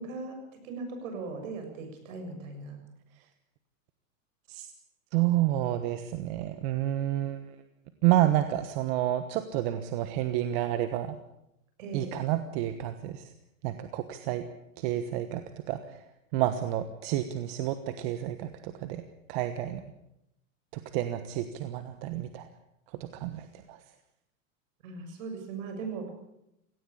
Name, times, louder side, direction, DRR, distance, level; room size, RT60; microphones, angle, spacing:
voice 1, 0.0-2.8 11.8-12.2 24.8-26.1, right 4 dB, 70° right, 5 dB, 7.0 m, -39 dB
voice 2, 5.1-7.6 8.0-11.2 11.9-13.3 13.6-14.4 14.8-16.0 16.3-19.0 19.3-19.8 20.7-22.5 23.0-23.8, right 13 dB, 45° right, 10 dB, 1.3 m, -30 dB
17.5 x 17.0 x 8.6 m, 0.83 s
supercardioid pair, 150°, 41 cm